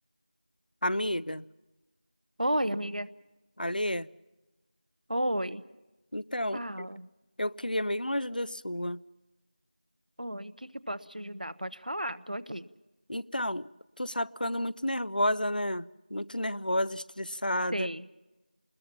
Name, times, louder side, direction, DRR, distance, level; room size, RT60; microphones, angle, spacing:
voice 1, 0.8-1.4 3.6-4.1 6.1-6.9 7.4-9.0 13.1-13.7 14.0-17.9, left 1 dB, 80° left, 0.7 m, -31 dB
voice 2, 2.4-3.1 5.1-5.6 6.5-7.1 10.2-12.7 17.7-18.1, equal, 70° right, 1.0 m, -33 dB
27.5 x 21.0 x 5.8 m
figure-of-eight pair, 180°, 5 cm